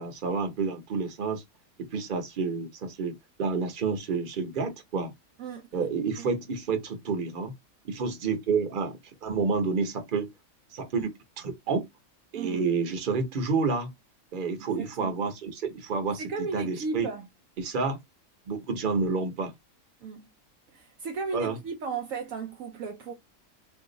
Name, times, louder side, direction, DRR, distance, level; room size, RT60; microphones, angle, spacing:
voice 1, 0.0-1.4 1.8-5.1 5.7-7.5 7.8-10.3 10.7-11.9 12.3-13.9 14.3-17.1 17.6-18.0 18.5-19.5 21.3-21.6, right 4 dB, 40° right, 0.9 m, -29 dB
voice 2, 12.3-12.7 14.7-15.1 16.2-17.3 20.0-20.3 20.7-23.1, right 4 dB, 70° right, 0.9 m, -35 dB
2.6 x 2.3 x 3.9 m
omnidirectional pair, 1.5 m